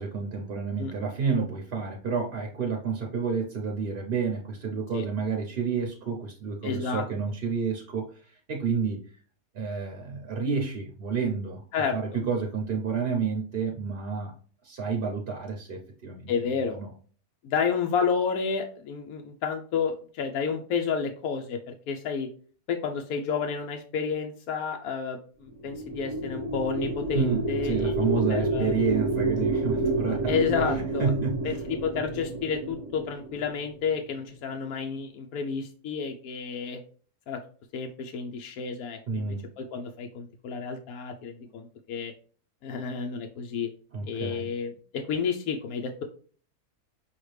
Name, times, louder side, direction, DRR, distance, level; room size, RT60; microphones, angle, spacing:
voice 1, 0.0-9.0 9.5-11.6 11.9-14.3 14.6-16.9 27.1-30.4 30.6-31.6 39.1-39.5 43.9-44.5, right 5 dB, 45° right, 1 dB, 0.8 m, -30 dB
voice 2, 6.6-7.0 11.7-12.0 16.3-16.8 17.4-22.3 22.7-27.9 28.3-28.7 30.3-31.1 31.4-36.8 37.3-37.4 37.7-42.1 42.6-43.7 44.1-46.0, left 6 dB, 70° left, 3 dB, 1.0 m, -30 dB
sound 1, 25.5-34.0, right 2 dB, 15° left, 1.1 m, -29 dB
5.7 x 2.8 x 3.2 m, 0.43 s
omnidirectional pair, 1.7 m